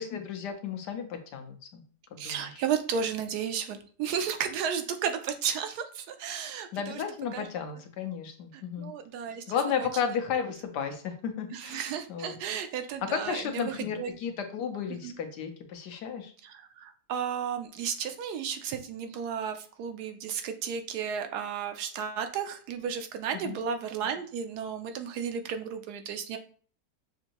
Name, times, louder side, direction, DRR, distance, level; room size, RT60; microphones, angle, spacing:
voice 1, 0.0-1.8 2.1-2.6 6.7-8.9 9.5-11.8 12.1-12.4 13.0-16.3 23.4-23.6, left 7 dB, 80° left, 6 dB, 1.3 m, -33 dB
voice 2, 2.2-7.0 7.3-7.5 8.8-9.4 9.8-9.9 11.5-14.1 15.0-15.1 16.4-26.4, right 7 dB, 75° right, 7 dB, 1.1 m, -33 dB
6.6 x 2.6 x 2.9 m, 0.43 s
omnidirectional pair, 1.8 m